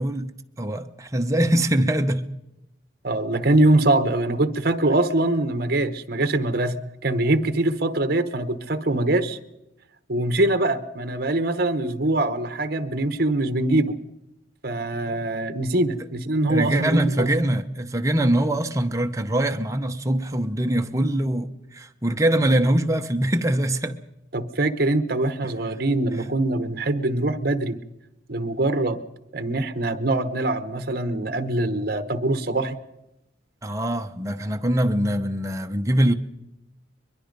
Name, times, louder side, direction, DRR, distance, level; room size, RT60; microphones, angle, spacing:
voice 1, 0.0-2.3 16.5-24.0 33.6-36.1, right 1 dB, 15° right, 0.9 m, -23 dB
voice 2, 3.0-6.8 7.0-9.4 10.1-13.9 14.6-17.3 24.3-27.8 28.3-29.0 29.3-32.8, right 2 dB, 55° right, 1.1 m, -23 dB
22.5 x 22.0 x 5.3 m
head